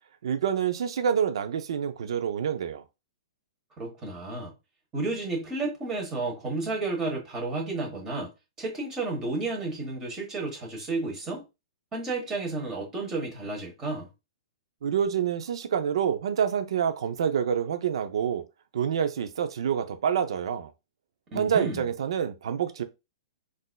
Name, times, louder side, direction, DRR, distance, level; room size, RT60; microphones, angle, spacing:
voice 1, 0.2-2.8 14.8-18.4 18.7-20.7 21.3-22.8, right 8 dB, 70° right, 0.5 m, -27 dB
voice 2, 3.8-4.5 4.9-8.3 8.6-11.4 11.9-14.1 21.3-21.9, right 3 dB, 15° right, 1.1 m, -32 dB
3.9 x 2.5 x 2.2 m
hypercardioid pair, 170°, 3 cm